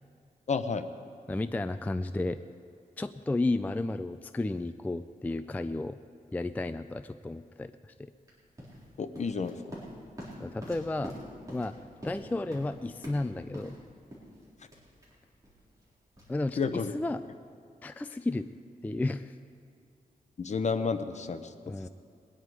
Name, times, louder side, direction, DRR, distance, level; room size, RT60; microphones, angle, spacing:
voice 1, 0.5-0.9 9.0-9.8 14.6-14.7 16.6-16.9 20.4-21.9, left 5 dB, 50° left, 9 dB, 0.8 m, -31 dB
voice 2, 1.3-2.4 3.0-6.0 6.3-8.1 10.4-11.2 11.5-11.8 12.0-13.8 16.3-17.2 17.8-18.5 18.8-19.4 21.7-21.9, left 2 dB, 10° left, 10 dB, 0.3 m, -32 dB
sound 1, 8.2-17.1, equal, 20° right, 4.0 m, -47 dB
21.5 x 10.0 x 4.7 m, 2.5 s
wide cardioid pair, 135°, 16 cm